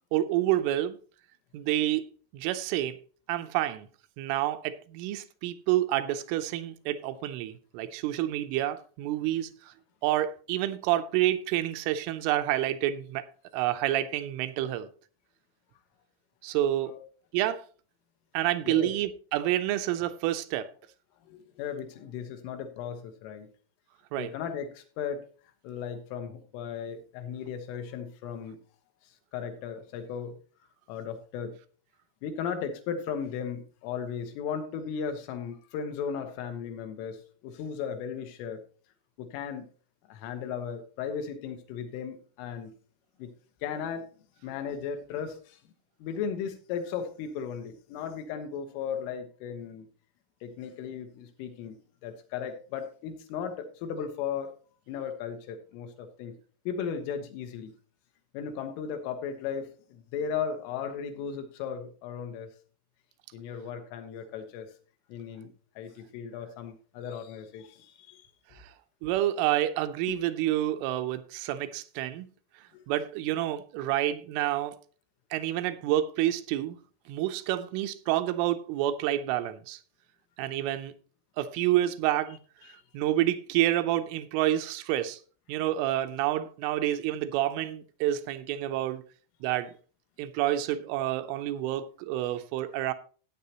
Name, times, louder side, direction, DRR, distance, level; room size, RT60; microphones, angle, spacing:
voice 1, 0.1-1.0 1.5-2.0 2.3-3.0 3.3-3.9 4.2-9.7 10.0-13.3 13.5-14.9 16.4-16.9 17.3-17.6 18.3-20.7 24.1-24.3 69.0-72.3 72.9-74.8 75.3-76.8 77.1-79.8 80.4-80.9 81.4-82.4 82.9-85.2 85.5-89.0 89.4-89.8 90.2-92.9, right 13 dB, 85° right, 3.1 m, -28 dB
voice 2, 21.3-23.5 24.2-25.3 25.6-28.6 29.3-30.4 30.9-31.5 32.2-38.6 39.2-39.7 40.1-42.7 43.2-43.3 43.6-44.1 44.4-45.6 46.0-49.9 50.4-51.8 52.0-54.5 54.9-56.3 56.7-57.7 58.3-62.5 63.3-64.7 65.1-68.3 70.1-70.2 72.7-72.8, left 7 dB, 80° left, 3.6 m, -36 dB
15.0 x 8.5 x 2.9 m
omnidirectional pair, 5.7 m